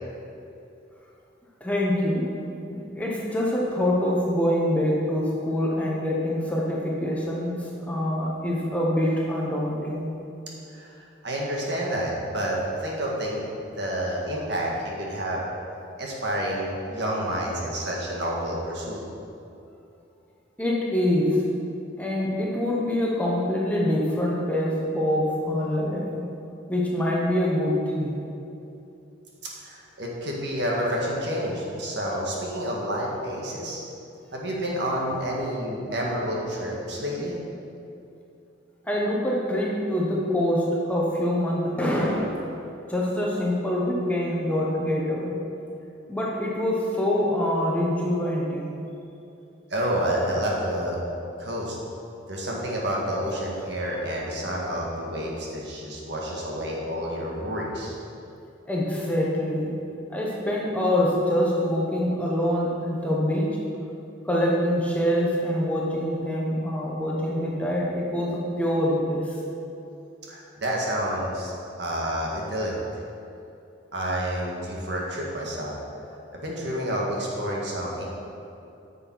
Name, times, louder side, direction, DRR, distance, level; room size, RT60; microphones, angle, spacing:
voice 1, 1.6-2.3 2.7-10.1 20.6-21.4 22.0-26.3 26.7-28.1 38.8-42.5 42.9-45.4 46.1-48.7 58.7-59.8 60.1-63.6 64.2-69.4, left 1 dB, 5° left, -4 dB, 1.1 m, -25 dB
voice 2, 10.7-13.4 13.8-15.4 16.0-19.0 29.6-33.8 34.3-37.4 49.7-51.0 51.4-51.8 52.3-57.9 70.3-73.0 73.9-75.8 76.3-78.0, equal, 60° right, -3 dB, 1.8 m, -29 dB
9.6 x 7.0 x 4.7 m, 2.7 s
head